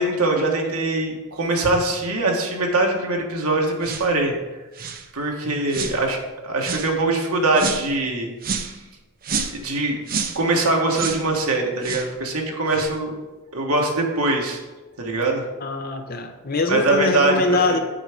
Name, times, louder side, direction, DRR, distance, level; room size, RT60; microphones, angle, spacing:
voice 1, 0.0-4.3 5.1-6.2 6.4-8.3 8.6-8.7 9.5-10.0 10.3-13.1 13.5-14.6 15.0-15.4 16.7-17.8, right 2 dB, 75° right, 1 dB, 1.4 m, -22 dB
sound 1, 3.8-4.1 4.7-5.0 5.7-6.0 6.6-6.9 7.5-7.9 8.4-8.7 9.2-9.6 10.1-10.4 10.9-11.2 11.8-12.1 12.7-12.9, right 5 dB, 40° right, 0.6 m, -28 dB
voice 2, 15.6-17.8, left 2 dB, 40° left, 5 dB, 0.7 m, -23 dB
7.8 x 4.7 x 5.1 m, 1.2 s
head